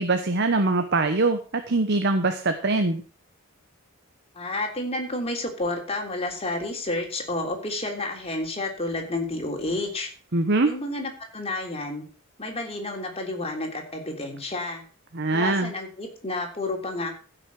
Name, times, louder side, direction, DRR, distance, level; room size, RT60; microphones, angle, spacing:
voice 1, 0.0-3.0 10.3-10.7 15.1-15.7, right 3 dB, 55° right, 7 dB, 1.1 m, -23 dB
voice 2, 4.3-10.1 10.6-12.0 12.4-14.8 15.3-17.1, left 2 dB, 30° left, 1 dB, 3.4 m, -30 dB
15.5 x 6.4 x 6.1 m, 0.38 s
head